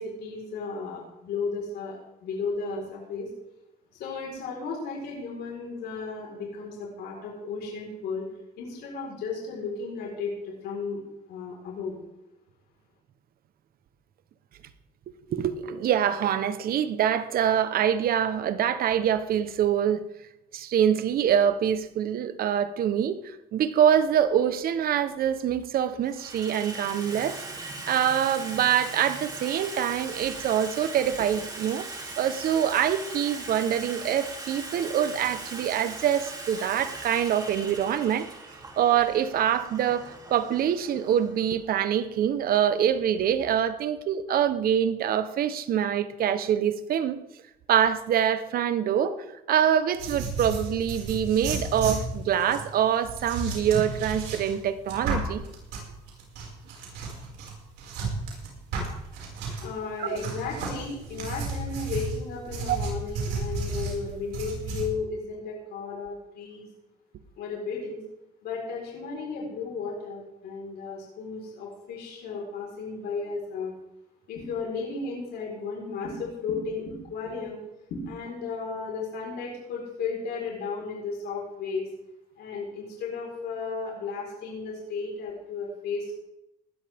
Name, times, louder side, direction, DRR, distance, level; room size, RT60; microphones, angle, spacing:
voice 1, 0.0-3.3 4.0-8.2 8.6-11.0 11.3-11.9 59.6-66.7 67.4-68.0 68.4-73.7 74.3-76.8 77.1-77.6 77.9-81.9 82.4-86.2, left 4 dB, 75° left, -2 dB, 4.6 m, -34 dB
voice 2, 15.3-20.0 20.5-23.2 23.5-31.9 32.2-38.3 38.8-47.2 47.7-49.1 49.5-55.4 60.0-60.2 62.7-62.8, right 9 dB, 60° right, 12 dB, 1.1 m, -25 dB
Water tap faucet / Sink (filling or washing), 24.2-24.3 25.2-25.6 25.9-43.5, right 2 dB, 20° right, 3.1 m, -40 dB
sound 1, 50.0-59.7 60.2-64.9, right 3 dB, 90° right, 5.8 m, -33 dB
19.0 x 13.0 x 3.7 m, 0.90 s
cardioid pair, 110°, 17 cm